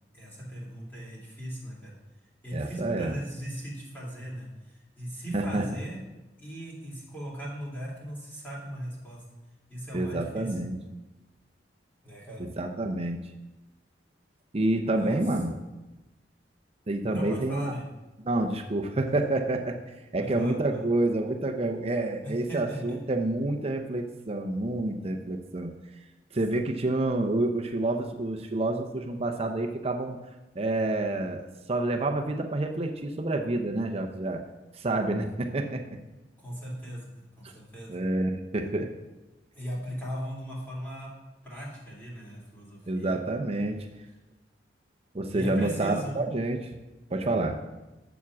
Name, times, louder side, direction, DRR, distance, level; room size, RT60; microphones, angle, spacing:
voice 1, 0.1-2.0 2.4-6.0 6.4-9.2 9.7-10.6 12.0-12.4 14.8-15.2 17.1-17.8 20.2-20.8 22.2-23.0 36.4-38.0 39.5-41.1 41.4-43.2 45.3-46.2, equal, 10° left, -5 dB, 2.7 m, -38 dB
voice 2, 2.5-3.1 5.3-5.6 9.9-10.8 12.4-13.2 14.5-15.5 16.9-17.7 18.3-19.8 20.1-25.7 26.3-30.2 30.5-31.4 31.7-34.4 34.7-35.8 37.9-38.9 42.9-43.9 45.1-46.6 47.1-47.6, right 2 dB, 35° right, 4 dB, 0.7 m, -28 dB
7.1 x 7.1 x 6.1 m, 1.0 s
head